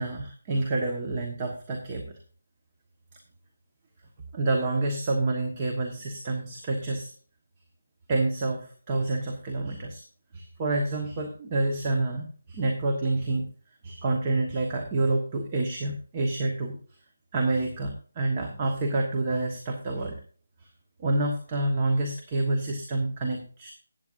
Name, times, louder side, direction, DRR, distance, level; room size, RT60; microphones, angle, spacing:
voice 1, 0.0-2.0 4.3-7.1 8.1-10.0 10.3-13.5 13.8-16.8 17.3-20.2 21.0-23.7, right 2 dB, 25° right, 1 dB, 1.4 m, -28 dB
14.5 x 9.4 x 2.6 m, 0.41 s
figure-of-eight pair, 165°, 0 cm